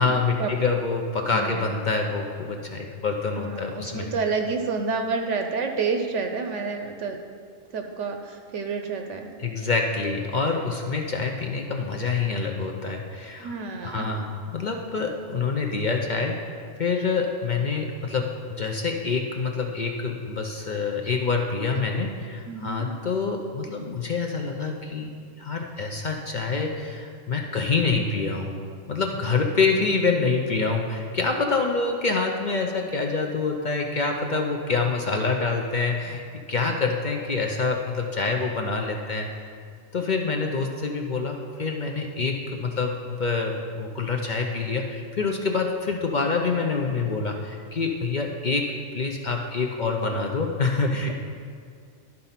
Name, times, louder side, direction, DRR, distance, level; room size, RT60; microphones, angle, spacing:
voice 1, 0.0-4.1 9.4-13.5 13.8-16.4 16.8-25.1 25.4-28.6 28.9-39.3 39.9-48.7 48.9-51.1, left 4 dB, 50° left, 2 dB, 0.6 m, -26 dB
voice 2, 1.3-1.7 3.4-7.2 7.7-9.3 13.4-14.2 21.7-21.8 22.4-22.9, right 4 dB, 70° right, 5 dB, 0.9 m, -29 dB
12.0 x 4.0 x 5.7 m, 2.2 s
omnidirectional pair, 1.4 m